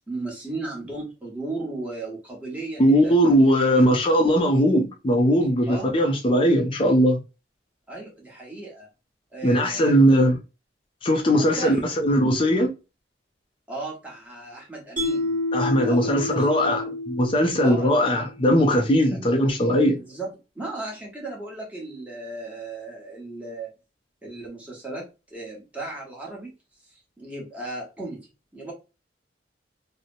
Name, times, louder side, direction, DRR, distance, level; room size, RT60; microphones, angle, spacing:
voice 1, 0.1-3.1 3.7-4.0 5.7-6.0 7.9-8.9 9.3-10.2 11.3-11.9 13.7-15.4 15.8-17.0 17.6-18.0 20.0-20.3 20.5-23.7 24.2-26.5 27.2-28.7, right 2 dB, 10° right, 1.0 m, -35 dB
voice 2, 2.8-7.2 9.4-10.4 11.0-12.7 15.5-16.8 17.2-20.0, equal, 30° left, 0.4 m, -19 dB
Mallet percussion, 15.0-18.2, left 2 dB, 50° right, 0.9 m, -29 dB
2.7 x 2.0 x 2.5 m
head